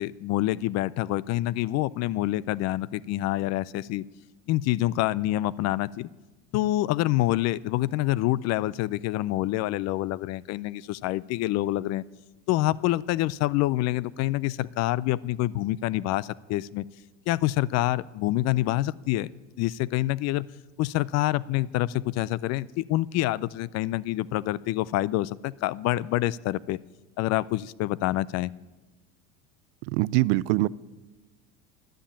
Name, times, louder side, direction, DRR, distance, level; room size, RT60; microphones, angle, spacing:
voice 1, 0.0-4.0 4.5-6.1 6.5-12.0 12.5-16.8 17.3-19.3 19.6-20.5 20.8-26.8 27.2-28.5, left 16 dB, 45° left, 21 dB, 0.4 m, -27 dB
voice 2, 29.9-30.7, right 19 dB, 65° right, 21 dB, 0.5 m, -23 dB
11.0 x 10.0 x 8.8 m, 1.2 s
hypercardioid pair, 95°, 38 cm